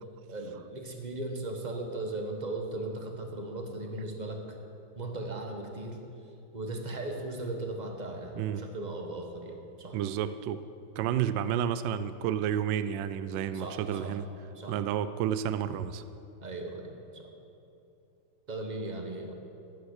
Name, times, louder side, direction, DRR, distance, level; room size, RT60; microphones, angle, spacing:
voice 1, 0.3-4.4 5.0-6.0 6.5-10.0 13.5-14.2 14.5-14.8 16.4-17.3 18.5-19.3, right 2 dB, 25° right, 3 dB, 0.9 m, -37 dB
voice 2, 9.9-10.6 11.0-14.3 14.7-16.0, right 9 dB, 75° right, 13 dB, 1.1 m, -30 dB
14.5 x 9.2 x 6.4 m, 2.7 s
omnidirectional pair, 2.4 m